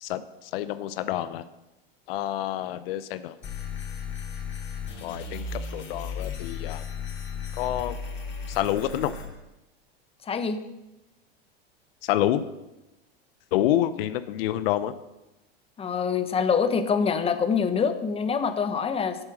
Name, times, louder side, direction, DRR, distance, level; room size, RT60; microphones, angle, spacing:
voice 1, 0.0-1.4 2.1-3.4 5.0-6.8 7.6-8.0 8.5-9.1 12.0-12.5 13.5-14.9, left 12 dB, 70° left, 13 dB, 0.6 m, -28 dB
sound 1, 3.4-9.3, left 5 dB, 40° left, 3.3 m, -35 dB
voice 2, 10.3-10.6 15.8-19.2, left 6 dB, 20° left, 9 dB, 0.9 m, -25 dB
8.0 x 7.4 x 6.3 m, 0.97 s
hypercardioid pair, 100°, 30 cm